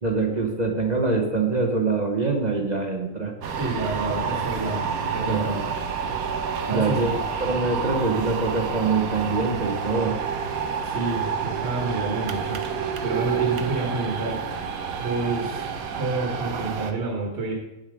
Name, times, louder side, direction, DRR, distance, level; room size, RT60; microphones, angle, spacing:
voice 1, 0.0-3.3 5.3-5.7 6.7-7.1 7.4-10.2, right 3 dB, 35° right, 2 dB, 1.1 m, -24 dB
sound 1, 3.4-16.9, right 6 dB, 85° right, 1.3 m, -29 dB
voice 2, 3.6-5.5 6.7-7.2 10.5-14.7 15.0-15.7 15.9-17.5, right 3 dB, 50° right, -1 dB, 1.9 m, -29 dB
9.2 x 7.2 x 5.1 m, 0.97 s
omnidirectional pair, 1.4 m